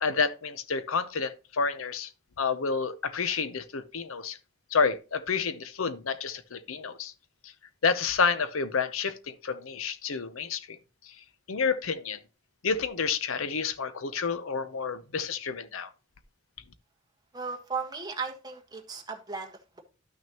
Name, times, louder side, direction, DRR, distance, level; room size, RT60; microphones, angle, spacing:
voice 1, 0.0-2.1 2.4-4.4 4.7-7.1 7.4-7.5 7.8-10.8 11.0-11.2 11.5-12.2 12.6-15.9, left 5 dB, 85° left, 0.7 m, -29 dB
voice 2, 17.3-19.8, right 5 dB, 20° right, 1.4 m, -36 dB
12.0 x 6.1 x 2.9 m
head